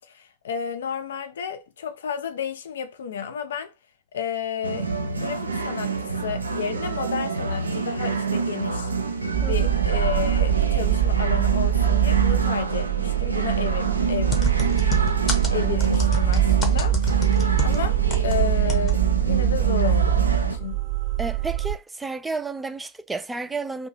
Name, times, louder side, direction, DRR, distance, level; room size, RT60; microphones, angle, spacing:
voice 1, 0.1-3.7 4.1-8.9 9.4-14.4 15.5-17.0 17.3-20.8, left 7 dB, 65° left, 0.5 m, -31 dB
sound 1, 4.6-20.6, right 4 dB, 80° right, 0.4 m, -27 dB
sound 2, 9.3-21.8, right 11 dB, 35° right, 0.8 m, -23 dB
sound 3, 14.3-18.4 18.7-19.0 19.2-19.3, left 1 dB, 20° left, 0.9 m, -29 dB
voice 2, 21.2-23.9, right 3 dB, 10° right, 0.3 m, -31 dB
2.7 x 2.3 x 3.9 m
figure-of-eight pair, 90°, 0 cm